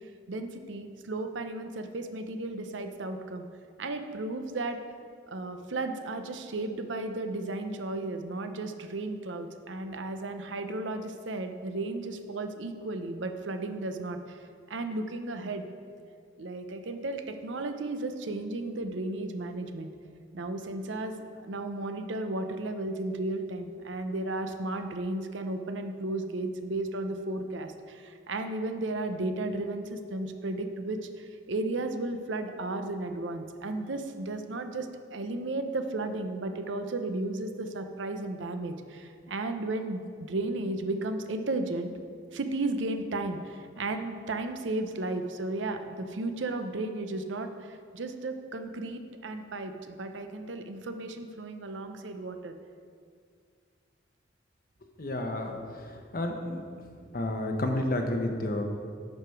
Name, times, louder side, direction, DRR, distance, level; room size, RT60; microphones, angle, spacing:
voice 1, 0.3-3.5 3.8-4.8 5.3-15.7 16.4-19.9 20.3-40.0 40.3-41.9 42.3-52.5, right 2 dB, 85° right, 7 dB, 0.7 m, -34 dB
voice 2, 55.0-55.6 55.9-56.6 57.1-58.6, left 1 dB, 50° left, 4 dB, 0.9 m, -30 dB
10.5 x 4.9 x 4.6 m, 2.1 s
head